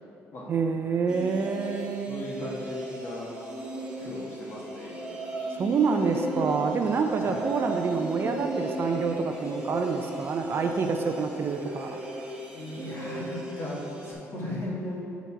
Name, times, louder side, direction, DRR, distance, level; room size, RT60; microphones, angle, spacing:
voice 1, 0.5-2.2 5.6-12.0, right 5 dB, 45° right, 5 dB, 0.5 m, -27 dB
sound 1, 1.1-14.1, right 1 dB, 20° right, 1.5 m, -36 dB
voice 2, 2.1-3.3 4.0-5.3 7.2-7.5 12.5-15.0, left 1 dB, 50° left, -4 dB, 1.7 m, -37 dB
6.2 x 4.1 x 5.8 m, 2.7 s
cardioid pair, 100°, 5 cm